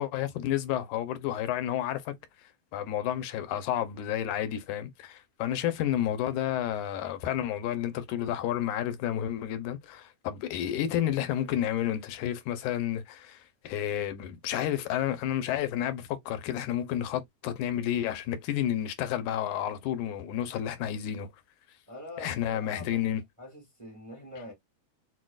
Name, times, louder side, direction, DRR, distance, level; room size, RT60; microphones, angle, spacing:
voice 1, 0.0-2.2 2.7-21.3 22.2-23.2, left 11 dB, 85° left, 2.1 m, -31 dB
voice 2, 21.9-24.5, left 1 dB, 35° right, 0.5 m, -45 dB
6.2 x 2.1 x 2.4 m
omnidirectional pair, 3.5 m